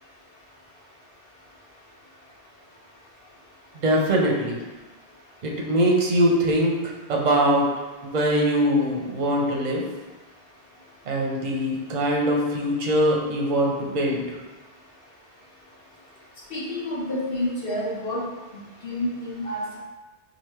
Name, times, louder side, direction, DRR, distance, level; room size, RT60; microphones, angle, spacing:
voice 1, 3.7-4.6 5.4-7.7 8.0-9.8 11.1-14.4, equal, 50° right, -1 dB, 0.7 m, -22 dB
voice 2, 16.5-18.2 18.8-19.8, left 1 dB, 65° left, -6 dB, 1.3 m, -29 dB
4.7 x 2.5 x 3.1 m, 1.2 s
omnidirectional pair, 1.1 m